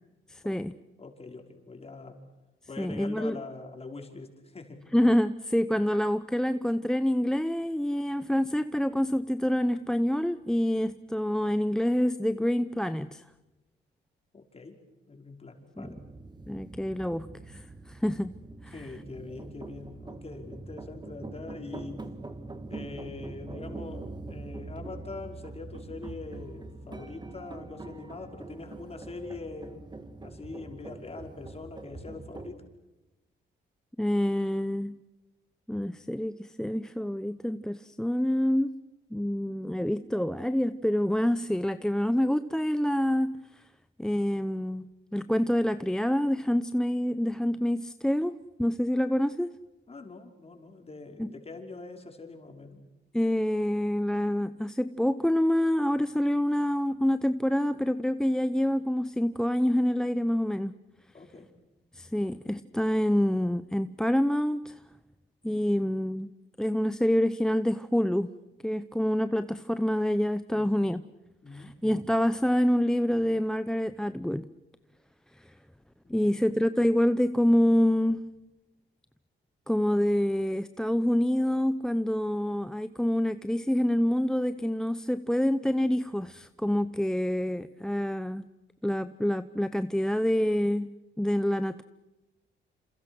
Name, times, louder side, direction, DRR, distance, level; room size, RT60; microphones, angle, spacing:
voice 1, 0.3-0.7 2.8-3.4 4.9-13.2 15.8-15.9 16.5-18.3 18.6-18.8 34.0-35.0 35.7-38.7 39.1-43.6 44.0-49.5 51.2-51.3 53.1-60.7 61.9-64.8 65.4-66.3 66.6-68.3 68.6-71.0 71.5-74.5 75.4-75.5 76.1-78.2 79.7-88.5 88.8-91.8, equal, 5° left, 13 dB, 0.8 m, -27 dB
voice 2, 1.0-2.2 2.7-4.9 14.3-14.8 15.1-16.0 18.7-22.1 22.7-29.8 30.2-32.7 49.9-52.8 61.1-61.5 70.5-70.9 71.4-71.7 76.0-76.4, left 3 dB, 30° left, 3 dB, 5.3 m, -43 dB
sound 1, 15.8-32.5, right 2 dB, 20° right, 2.1 m, -43 dB
28.0 x 28.0 x 6.3 m, 1.1 s
cardioid pair, 90°, 20 cm